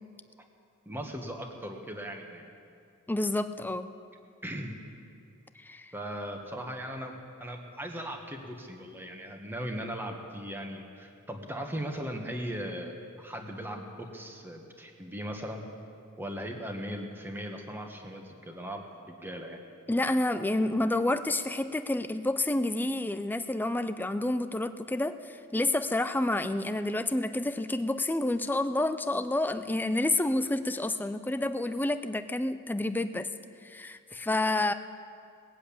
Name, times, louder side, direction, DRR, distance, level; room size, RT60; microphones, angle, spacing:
voice 1, 0.8-2.4 4.4-4.8 5.9-15.6 16.2-19.6, equal, 10° right, 2 dB, 1.4 m, -38 dB
voice 2, 3.1-3.9 5.6-5.9 19.9-33.3 33.6-34.7, left 2 dB, 10° left, 11 dB, 0.4 m, -29 dB
19.0 x 7.7 x 8.6 m, 2.4 s
head